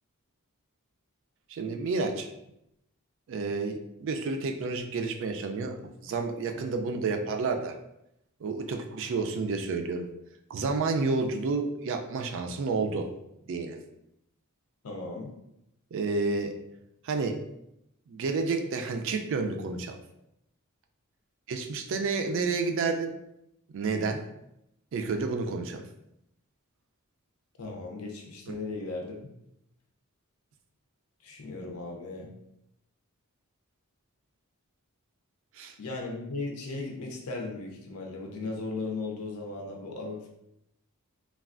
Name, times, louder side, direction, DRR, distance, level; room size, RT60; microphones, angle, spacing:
voice 1, 1.5-2.3 3.3-7.8 8.4-10.1 10.5-13.1 13.5-13.8 15.9-16.6 17.0-17.4 18.1-20.0 21.5-23.1 23.7-24.2 24.9-25.8 28.5-28.6 35.5-35.8, right 4 dB, 60° right, 5 dB, 0.3 m, -30 dB
voice 2, 14.8-15.3 27.6-29.2 31.2-32.3 35.8-40.3, left 3 dB, 85° left, 1 dB, 0.6 m, -36 dB
3.2 x 2.3 x 2.4 m, 0.82 s
head